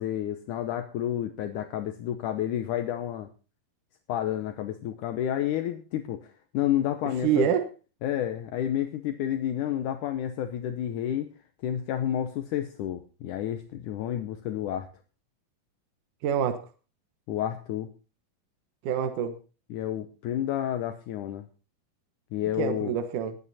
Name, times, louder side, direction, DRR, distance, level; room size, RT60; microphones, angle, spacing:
voice 1, 0.0-3.3 4.1-6.3 6.5-7.5 8.0-11.3 11.6-14.9 17.3-17.9 19.7-21.5 22.3-22.9, left 11 dB, 75° left, 8 dB, 2.3 m, -30 dB
voice 2, 7.2-7.6 16.2-16.6 18.8-19.4 22.6-23.4, right 8 dB, 70° right, 8 dB, 2.7 m, -26 dB
20.0 x 8.9 x 4.2 m, 0.35 s
omnidirectional pair, 3.9 m